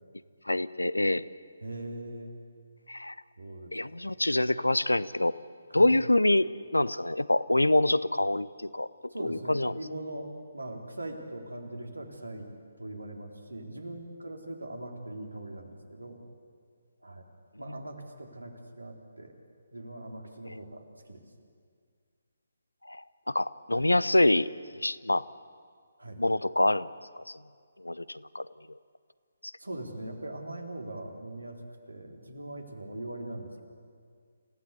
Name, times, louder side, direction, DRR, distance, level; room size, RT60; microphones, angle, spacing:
voice 1, 0.5-1.2 2.9-3.1 3.7-5.4 5.7-9.8 20.5-20.6 22.9-24.5 24.7-25.2 26.2-26.9 27.8-28.5, left 1 dB, 85° left, 17 dB, 0.7 m, -26 dB
voice 2, 1.6-2.4 3.4-4.1 5.7-5.9 9.1-10.3 10.5-12.5 12.8-16.2 17.0-17.2 17.6-19.3 19.7-21.2 23.7-23.8 26.0-26.2 29.6-31.6 31.9-33.6, right 1 dB, 85° right, 2 dB, 3.7 m, -41 dB
28.0 x 15.5 x 8.3 m, 2.1 s
figure-of-eight pair, 145°, 0 cm